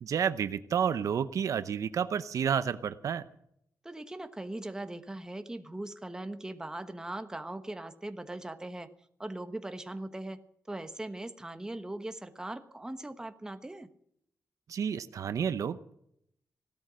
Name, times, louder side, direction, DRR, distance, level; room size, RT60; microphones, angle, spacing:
voice 1, 0.0-3.2 14.7-16.0, right 7 dB, 75° right, 12 dB, 0.8 m, -30 dB
voice 2, 3.8-8.9 9.2-10.4 10.7-13.9, right 1 dB, 10° right, 8 dB, 1.2 m, -40 dB
17.0 x 12.5 x 6.3 m, 0.72 s
wide cardioid pair, 120°, 6 cm